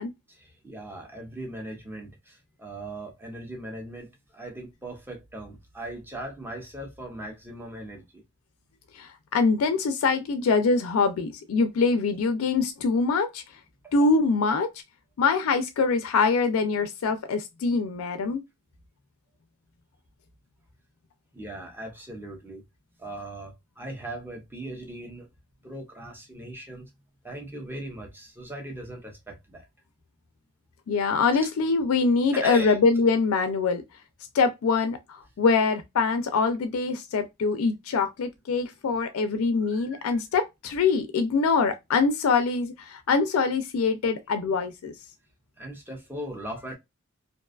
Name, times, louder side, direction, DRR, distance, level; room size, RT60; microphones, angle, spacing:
voice 1, 0.3-8.2 13.8-14.1 21.3-22.6 23.0-25.3 25.6-26.9 27.2-29.7 31.3-31.5 32.3-32.8 39.6-40.2 45.6-46.8, right 1 dB, 10° right, 0.6 m, -39 dB
voice 2, 8.9-13.4 13.9-14.7 15.2-18.4 30.9-33.8 34.3-44.9, left 4 dB, 70° left, 0.4 m, -24 dB
2.5 x 2.3 x 2.2 m
head